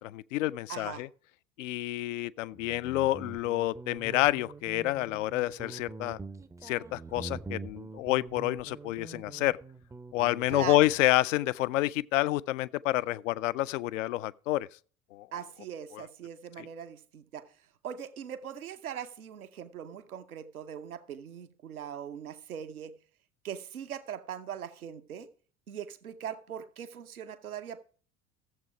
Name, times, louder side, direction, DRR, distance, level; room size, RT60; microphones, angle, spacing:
voice 1, 0.0-1.1 1.6-6.2 6.6-9.6 10.1-14.7 15.1-15.3 15.9-16.0 16.6-16.7, left 16 dB, 60° left, 0.5 m, -29 dB
voice 2, 0.7-1.0 10.5-10.9 15.3-17.5 17.8-23.0 23.4-25.3 25.7-27.8, right 9 dB, 80° right, 0.9 m, -40 dB
Guitar, 2.5-11.0, right 3 dB, 5° right, 0.5 m, -45 dB
14.0 x 7.5 x 4.8 m
figure-of-eight pair, 65°, 43 cm